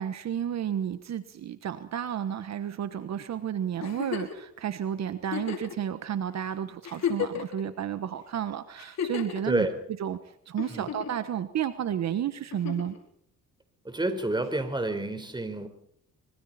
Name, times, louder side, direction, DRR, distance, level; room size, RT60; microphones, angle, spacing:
voice 1, 0.0-9.7 10.0-10.2 10.5-13.0, right 9 dB, 60° right, 11 dB, 1.3 m, -32 dB
Giggle, 3.8-4.4 5.2-5.7 6.4-6.5 6.8-7.6 8.8-9.4 10.6-11.2 12.5-13.0 14.5-14.6, left 8 dB, 60° left, 5.1 m, -33 dB
voice 2, 9.4-9.8 10.7-10.9 13.8-15.7, right 2 dB, 15° right, 8 dB, 4.3 m, -29 dB
26.0 x 24.0 x 4.3 m, 0.66 s
cardioid pair, 90°, 30 cm